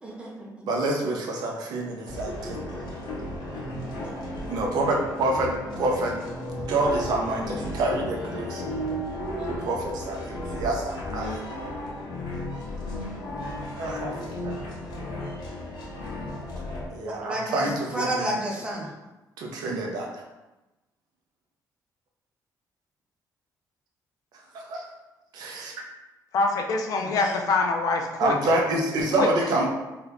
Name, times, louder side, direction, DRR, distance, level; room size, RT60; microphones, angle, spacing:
voice 1, 0.0-0.7 4.0-4.2 9.3-9.7 17.0-17.7 17.9-18.9 27.0-27.4, right 1 dB, 15° right, -3 dB, 0.6 m, -32 dB
voice 2, 0.7-2.6 4.5-6.2 6.6-8.6 9.5-11.4 13.4-14.6 16.9-18.4 19.4-20.1 24.5-24.8 25.3-25.7 28.2-29.7, right 2 dB, 70° right, 0 dB, 0.6 m, -27 dB
sound 1, 2.0-16.9, left 1 dB, 80° left, 0.8 m, -34 dB
voice 3, 26.3-28.4 29.1-29.3, left 3 dB, 55° left, 2 dB, 0.4 m, -24 dB
2.8 x 2.4 x 3.4 m, 1.0 s
cardioid pair, 180°, 7 cm